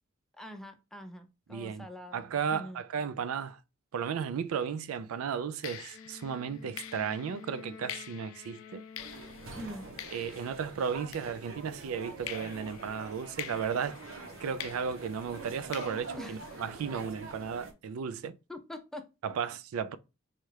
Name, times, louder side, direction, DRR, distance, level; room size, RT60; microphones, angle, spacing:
voice 1, 0.3-2.8 9.5-9.9 16.2-16.6 18.5-19.1, equal, ahead, 0.4 m, -44 dB
voice 2, 1.5-1.9 2.1-3.6 3.9-8.8 10.1-14.0 14.4-18.4 19.2-20.0, right 6 dB, 85° right, 0.4 m, -34 dB
sound 1, 4.5-4.7 5.6-11.8 12.3-17.0, left 10 dB, 70° left, 0.4 m, -47 dB
Wind instrument woodwind instrument, 5.9-10.1, left 5 dB, 85° left, 0.8 m, -51 dB
sound 2, 9.0-17.7, right 3 dB, 70° right, 0.8 m, -45 dB
4.2 x 2.4 x 3.1 m
head